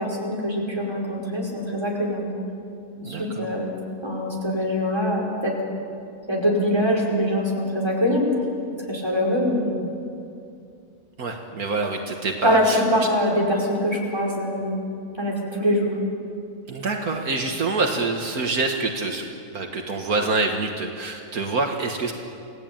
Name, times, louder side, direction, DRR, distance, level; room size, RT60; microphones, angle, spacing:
voice 1, 0.0-2.3 3.0-3.7 4.0-5.5 6.3-8.3 8.9-9.9 12.4-14.8 15.2-15.9, equal, 15° right, -2 dB, 5.2 m, -23 dB
voice 2, 3.0-3.5 11.2-12.8 16.7-19.3 19.5-22.1, right 3 dB, 70° right, 2 dB, 2.1 m, -26 dB
29.0 x 18.0 x 9.0 m, 2.5 s
omnidirectional pair, 1.6 m